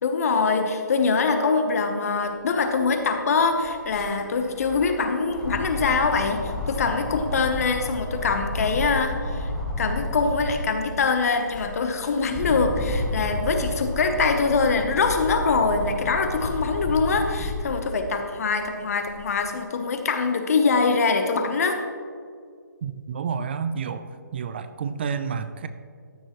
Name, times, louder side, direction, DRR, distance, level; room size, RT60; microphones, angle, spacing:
voice 1, 0.0-9.5 9.8-21.8, left 4 dB, 50° left, 6 dB, 1.0 m, -23 dB
sound 1, 2.6-2.7 3.0-10.8 11.3-17.8 18.3-19.4, left 2 dB, 5° left, 0.8 m, -31 dB
voice 2, 22.8-25.7, right 6 dB, 35° right, 11 dB, 0.3 m, -30 dB
14.0 x 6.5 x 3.1 m, 2.2 s
hypercardioid pair, 160°, 10 cm